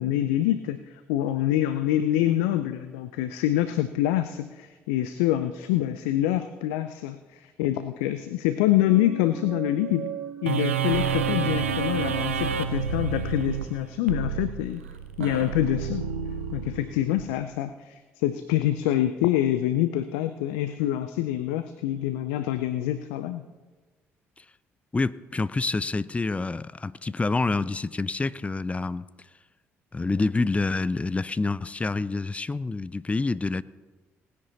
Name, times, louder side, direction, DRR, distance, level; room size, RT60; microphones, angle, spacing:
voice 1, 0.0-10.1 10.4-14.8 15.2-16.1 16.5-23.5, left 13 dB, 70° left, 0.5 m, -26 dB
sound 1, 8.8-14.6, right 8 dB, 40° right, 2.6 m, -37 dB
sound 2, 10.5-17.2, right 6 dB, 85° right, 0.6 m, -29 dB
voice 2, 24.9-29.1 29.9-33.6, left 3 dB, 20° left, 0.5 m, -27 dB
18.5 x 9.9 x 4.0 m
figure-of-eight pair, 45°, 7 cm